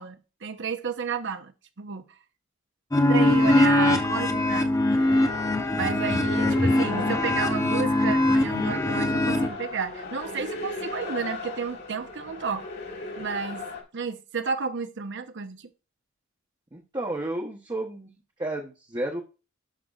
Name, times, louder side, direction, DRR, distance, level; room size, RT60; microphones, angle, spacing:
voice 1, 0.0-2.1 3.1-4.8 5.8-12.7 13.2-13.7 13.9-15.7, right 5 dB, 60° right, 0.9 m, -32 dB
sound 1, 2.9-9.5, left 1 dB, 15° left, 0.8 m, -22 dB
sound 2, 4.9-13.8, left 2 dB, 55° left, 1.9 m, -37 dB
voice 2, 6.4-7.1 16.7-18.1 18.4-19.2, right 1 dB, 20° right, 1.0 m, -33 dB
11.5 x 5.9 x 2.5 m
head